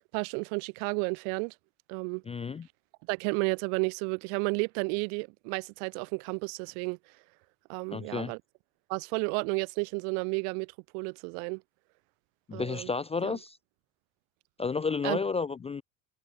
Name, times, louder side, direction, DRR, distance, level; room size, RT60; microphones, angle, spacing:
voice 1, 0.1-1.5 1.9-2.2 3.1-7.0 7.7-8.4 8.9-11.6 12.5-12.9 13.2-13.4 15.0-15.2, right 40 dB or more, 75° right, 1.5 m, -32 dB
voice 2, 2.3-2.7 7.9-8.3 12.5-13.6 14.6-15.8, left 4 dB, 15° left, 0.3 m, -31 dB
hypercardioid pair, 70°, 44 cm